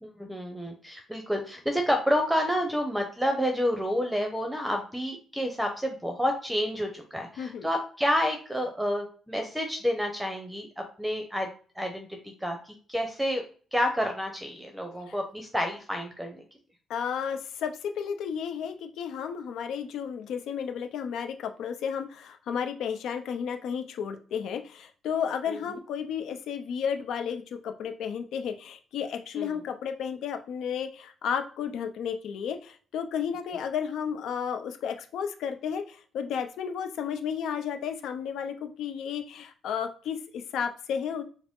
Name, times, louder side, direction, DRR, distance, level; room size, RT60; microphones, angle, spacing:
voice 1, 0.0-11.5 11.8-12.1 12.4-13.4 13.7-16.4 25.5-25.6 29.3-29.6, equal, 5° right, 4 dB, 0.7 m, -29 dB
voice 2, 16.9-41.2, left 7 dB, 75° left, 7 dB, 0.6 m, -33 dB
4.8 x 2.0 x 3.6 m, 0.41 s
cardioid pair, 90°, 0 cm